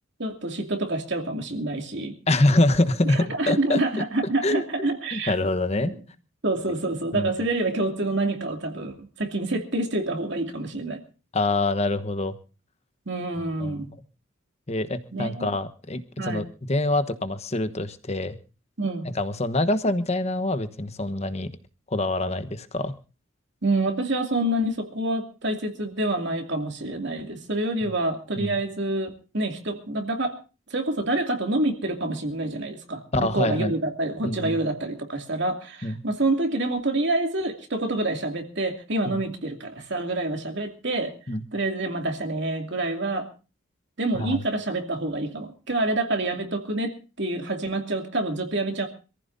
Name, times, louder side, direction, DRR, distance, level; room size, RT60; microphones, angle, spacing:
voice 1, 0.2-2.1 3.1-5.3 5.8-6.0 6.4-11.0 13.1-13.9 15.1-15.5 16.2-16.4 18.8-19.1 23.6-30.3 30.7-41.1 41.5-43.3 44.0-48.9, right 2 dB, 60° right, 3 dB, 2.6 m, -27 dB
voice 2, 2.3-3.8 4.4-4.6 5.1-5.9 7.1-7.3 11.3-12.3 13.6-13.8 14.7-18.4 19.1-21.5 21.9-22.9 28.4-28.5 33.1-33.7 34.2-34.6 35.8-36.0 39.1-39.2 41.3-41.4 44.1-44.4, left 2 dB, 35° left, 11 dB, 1.1 m, -25 dB
26.5 x 15.0 x 2.7 m, 0.33 s
head